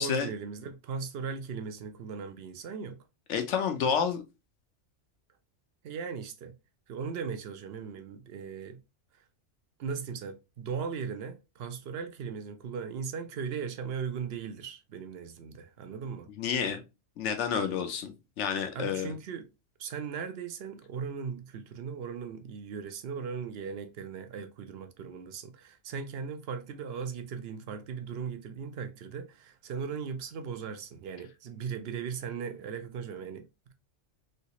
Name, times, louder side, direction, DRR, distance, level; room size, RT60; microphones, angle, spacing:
voice 1, 0.0-3.0 5.8-6.6 6.9-8.8 9.1-9.2 9.8-16.3 18.7-19.5 19.8-33.7, right 6 dB, 65° right, 0.7 m, -38 dB
voice 2, 3.3-4.2 16.4-16.8 17.2-19.1, left 7 dB, 75° left, 1.0 m, -29 dB
3.2 x 2.9 x 2.8 m
omnidirectional pair, 1.3 m